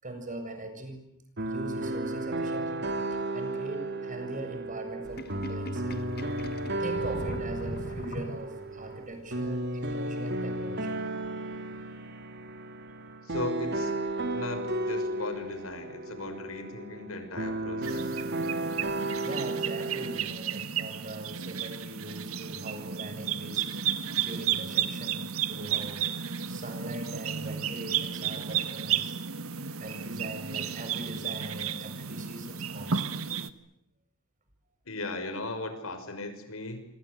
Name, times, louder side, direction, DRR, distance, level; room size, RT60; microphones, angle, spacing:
voice 1, 0.0-1.1 1.4-2.9 3.3-6.0 6.3-6.4 6.8-11.0 19.2-29.2 29.8-33.1, right 1 dB, 40° right, 6 dB, 7.3 m, -41 dB
sound 1, 1.4-20.2, right 2 dB, 55° right, 2.7 m, -34 dB
Sink (filling or washing), 5.0-8.8, left 1 dB, 50° left, 1.7 m, -40 dB
voice 2, 13.2-13.9 14.3-18.2 34.9-36.9, left 2 dB, 80° left, 9 dB, 5.8 m, -37 dB
sound 2, 17.8-33.5, right 8 dB, 85° right, 1.6 m, -33 dB
27.5 x 26.5 x 8.2 m, 0.76 s
head